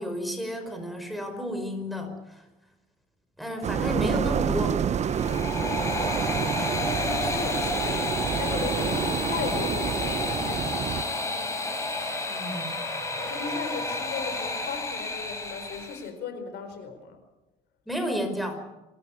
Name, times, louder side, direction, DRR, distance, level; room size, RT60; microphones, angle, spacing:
voice 1, 0.0-2.4 3.4-4.8 12.3-12.7 17.9-18.6, equal, ahead, 5 dB, 5.1 m, -31 dB
sound 1, 3.6-11.0, right 8 dB, 40° right, 0.9 m, -28 dB
sound 2, 4.9-16.1, left 2 dB, 15° left, 5.4 m, -31 dB
voice 2, 5.6-5.9 6.8-10.8 13.1-17.2, left 5 dB, 75° left, 8 dB, 4.4 m, -36 dB
27.5 x 13.5 x 9.8 m, 1.1 s
cardioid pair, 110°, 17 cm